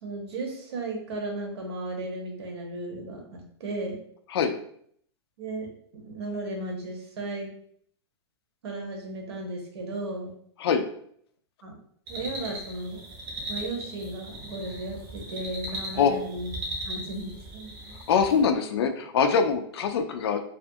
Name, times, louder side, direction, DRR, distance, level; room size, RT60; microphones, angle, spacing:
voice 1, 0.0-4.0 5.4-5.7 5.9-7.5 8.6-10.4 11.6-11.7 12.1-13.0 13.5-16.5 16.8-18.0, right 2 dB, 70° right, 1 dB, 0.8 m, -35 dB
sound 1, 12.1-18.4, right 1 dB, 25° right, 0.7 m, -38 dB
voice 2, 18.1-20.4, left 6 dB, 65° left, 7 dB, 0.4 m, -23 dB
2.4 x 2.3 x 2.6 m, 0.65 s
supercardioid pair, 165°, 14 cm